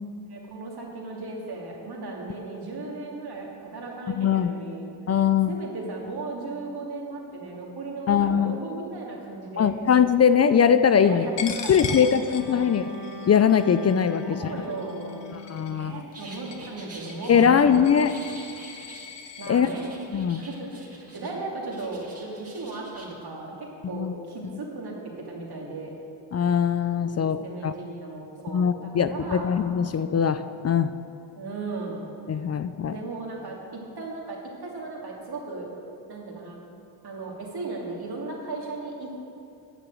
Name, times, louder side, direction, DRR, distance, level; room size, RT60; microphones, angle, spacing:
voice 1, 0.3-4.9 5.5-9.7 11.0-12.8 14.2-17.9 19.4-19.9 20.4-24.9 25.2-25.9 27.4-29.5 31.3-32.0 32.8-35.7 36.1-36.6 37.0-39.3, right 3 dB, 50° right, -2 dB, 2.9 m, -36 dB
voice 2, 4.1-4.5 5.1-5.5 8.1-8.5 9.6-12.8 13.3-14.4 15.5-16.0 17.3-18.1 19.5-19.7 20.1-20.4 23.9-24.1 26.3-27.7 28.5-30.9 32.3-33.0, left 7 dB, 35° left, 12 dB, 0.4 m, -21 dB
Coin (dropping), 11.4-19.5, left 6 dB, 60° left, 1.3 m, -40 dB
Bowed string instrument, 12.3-16.3, left 3 dB, 90° left, 2.0 m, -40 dB
sound 1, 16.1-17.4 18.0-19.1 19.6-21.4 21.7-23.1, right 2 dB, 30° right, 2.5 m, -47 dB
10.0 x 6.7 x 7.6 m, 2.7 s
supercardioid pair, 65°, 49 cm